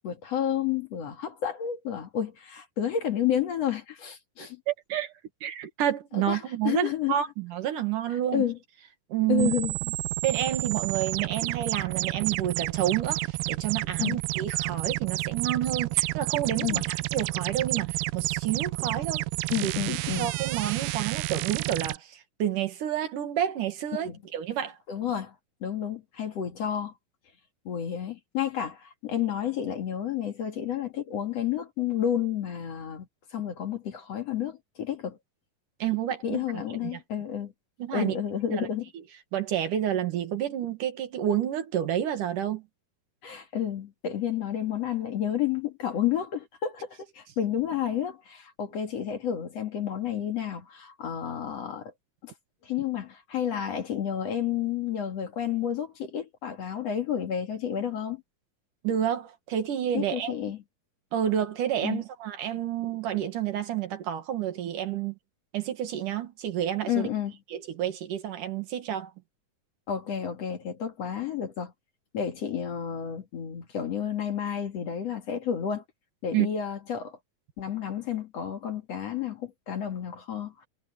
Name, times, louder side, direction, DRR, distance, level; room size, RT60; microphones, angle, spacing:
voice 1, 0.0-4.6 6.1-7.2 8.3-8.6 9.3-9.7 14.0-14.2 16.6-16.8 19.5-20.3 23.9-24.2 24.9-25.3 25.6-26.9 27.7-33.1 33.3-35.2 36.2-37.5 37.9-38.9 43.2-51.9 52.2-52.3 52.6-58.2 59.9-60.6 61.8-62.0 66.9-67.3 69.9-71.7 72.1-75.8 76.2-77.2 77.6-80.7, left 9 dB, 50° left, 2.9 m, -30 dB
voice 2, 4.7-5.1 5.4-8.4 9.1-9.5 10.2-16.8 17.1-19.2 19.6-19.7 20.2-24.8 35.8-36.4 36.8-37.0 37.8-38.2 38.5-38.7 39.3-42.6 58.8-60.3 61.1-65.1 65.5-67.1 67.5-69.1 76.3-76.5, right 10 dB, 70° right, 3.2 m, -29 dB
sound 1, 9.4-22.0, right 21 dB, 90° right, 2.3 m, -30 dB
omnidirectional pair, 3.9 m